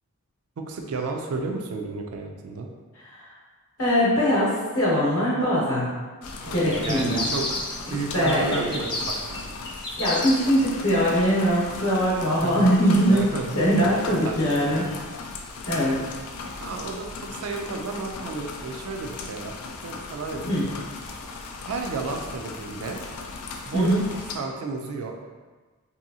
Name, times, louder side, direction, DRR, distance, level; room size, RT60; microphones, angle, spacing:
voice 1, 0.6-2.7 6.4-7.5 7.9-9.6 12.4-12.7 13.1-14.8 15.7-15.9 16.6-19.6 19.8-20.7 21.7-23.0 23.7-25.2, right 4 dB, 75° right, 3 dB, 0.4 m, -32 dB
voice 2, 3.8-5.9 6.5-7.2 8.1-8.8 10.0-13.3 13.6-14.9 15.7-16.0 20.4-20.6 23.7-24.0, equal, 65° left, -7 dB, 0.8 m, -22 dB
sound 1, 6.2-24.4, left 4 dB, 90° left, 0.3 m, -37 dB
sound 2, 6.7-7.9 8.3-10.6, left 2 dB, 25° left, 0.4 m, -31 dB
2.7 x 2.6 x 2.7 m, 1.3 s
head